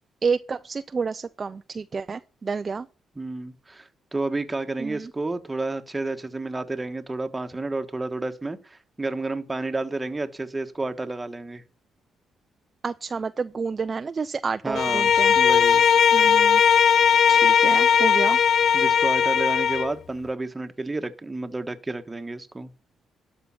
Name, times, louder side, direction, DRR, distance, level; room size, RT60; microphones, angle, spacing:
voice 1, 0.2-2.9 4.8-5.1 12.8-15.4 16.1-16.6 17.3-18.4, right 5 dB, 35° right, 0.5 m, -29 dB
voice 2, 3.2-11.6 14.6-15.8 18.7-22.7, right 2 dB, 15° right, 1.3 m, -31 dB
Bowed string instrument, 14.7-19.9, left 7 dB, 60° left, 0.4 m, -18 dB
12.5 x 5.7 x 5.8 m
cardioid pair, 90°, 0 cm